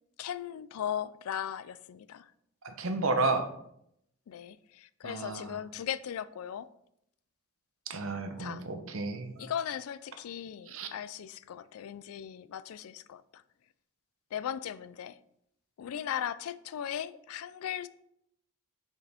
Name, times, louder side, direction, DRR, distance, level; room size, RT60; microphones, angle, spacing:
voice 1, 0.2-2.3 4.3-6.7 8.4-8.6 9.4-13.2 14.3-15.2 15.8-17.9, left 9 dB, 85° left, 0.3 m, -37 dB
voice 2, 2.6-3.5 5.0-5.6 7.9-9.5 10.7-10.9, right 3 dB, 70° right, 0.8 m, -32 dB
6.6 x 5.0 x 3.5 m
head